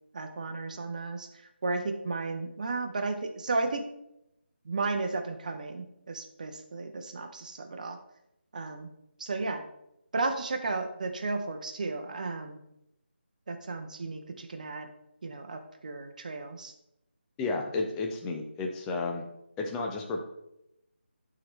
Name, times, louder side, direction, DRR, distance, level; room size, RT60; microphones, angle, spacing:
voice 1, 0.1-1.3 1.6-3.9 4.6-8.0 8.5-8.9 9.2-9.6 10.1-12.6 13.5-14.9 15.2-16.7, right 3 dB, 40° right, 6 dB, 0.8 m, -34 dB
voice 2, 17.4-19.2 19.6-20.2, left 3 dB, 10° left, 2 dB, 0.5 m, -32 dB
11.5 x 3.9 x 3.2 m, 0.83 s
figure-of-eight pair, 160°, 6 cm